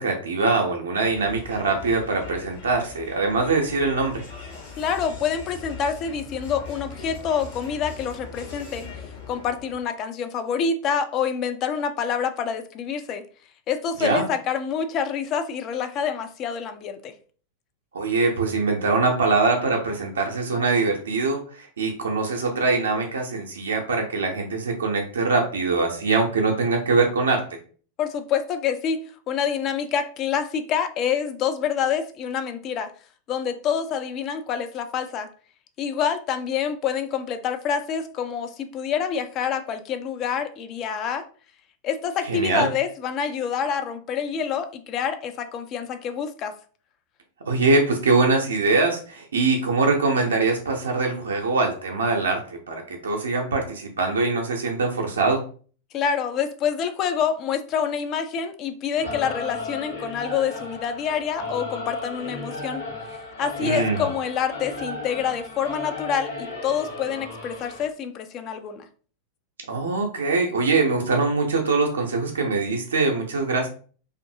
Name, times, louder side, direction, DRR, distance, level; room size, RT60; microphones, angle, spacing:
voice 1, 0.0-4.2 14.0-14.3 17.9-27.6 42.3-42.7 47.5-55.4 63.6-64.0 69.7-73.7, right 3 dB, 70° right, 2 dB, 0.5 m, -23 dB
Crowd, 1.0-9.9, left 4 dB, 55° left, 1.3 m, -41 dB
voice 2, 4.8-13.2 13.7-17.1 28.0-29.0 29.3-32.9 33.3-35.3 35.8-41.2 41.8-46.5 55.9-62.8 63.4-68.9, left 7 dB, 35° left, 8 dB, 0.3 m, -27 dB
Singing / Musical instrument, 59.0-67.9, left 3 dB, 75° left, 1.1 m, -34 dB
2.6 x 2.4 x 2.6 m, 0.41 s
figure-of-eight pair, 90°, 0 cm